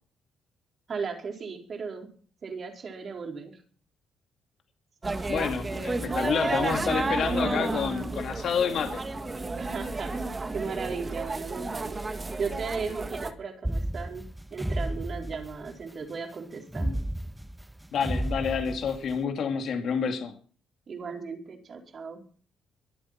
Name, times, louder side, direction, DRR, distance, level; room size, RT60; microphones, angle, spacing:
voice 1, 0.9-2.1 2.4-3.6 9.5-10.2 10.5-12.0 12.4-14.2 14.5-16.9 20.9-22.2, right 5 dB, 50° right, 3 dB, 4.4 m, -36 dB
sound 1, 5.0-13.3, right 2 dB, 25° right, 2.0 m, -31 dB
voice 2, 5.3-9.0 16.8-17.0 17.9-20.3, left 7 dB, 65° left, 5 dB, 2.4 m, -29 dB
sound 2, 13.6-15.8 16.7-19.1, right 1 dB, 5° right, 0.7 m, -32 dB
23.0 x 8.3 x 5.9 m, 0.43 s
cardioid pair, 90°, 0 cm